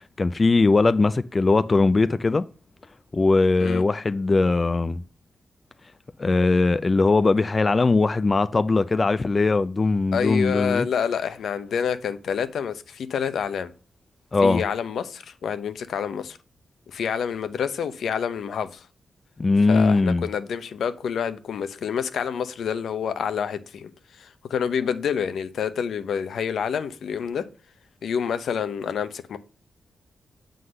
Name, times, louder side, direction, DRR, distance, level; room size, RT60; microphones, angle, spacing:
voice 1, 0.2-2.4 3.1-5.0 6.2-10.9 14.3-14.6 19.4-20.2, left 3 dB, 30° left, 0.4 m, -20 dB
voice 2, 10.1-13.7 14.4-16.4 16.9-18.9 19.7-27.5 28.0-29.4, left 7 dB, 85° left, 0.7 m, -28 dB
7.8 x 3.9 x 6.4 m
wide cardioid pair, 115°, 0 cm